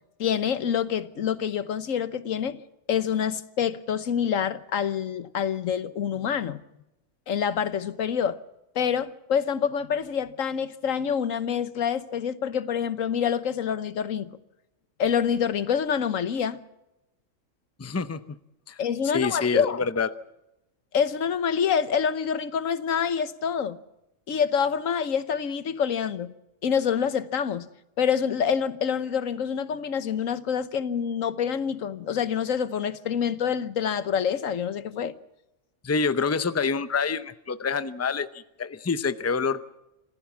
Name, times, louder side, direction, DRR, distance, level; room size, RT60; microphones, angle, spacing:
voice 1, 0.2-2.6 2.9-6.6 7.3-8.4 8.7-14.3 15.0-16.6 18.8-19.8 20.9-23.8 24.3-26.3 26.6-27.7 28.0-35.1, left 7 dB, 90° left, 1.4 m, -26 dB
voice 2, 17.8-18.2 18.7-18.8 19.1-20.1 35.8-39.6, left 5 dB, 15° left, 0.6 m, -27 dB
26.5 x 15.5 x 7.2 m
omnidirectional pair, 1.3 m